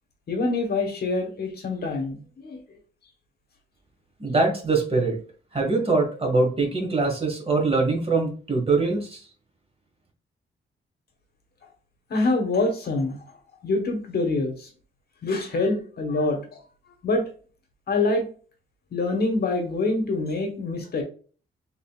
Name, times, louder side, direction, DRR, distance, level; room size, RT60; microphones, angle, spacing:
voice 1, 0.3-2.6 12.1-13.2 13.6-14.7 15.2-16.4 17.0-17.2 17.9-18.3 18.9-21.0, left 2 dB, 55° left, 4 dB, 1.1 m, -25 dB
voice 2, 4.2-5.2 5.5-9.2, right 3 dB, 30° right, 1 dB, 1.4 m, -23 dB
3.9 x 3.8 x 2.3 m, 0.39 s
cardioid pair, 105°, 19 cm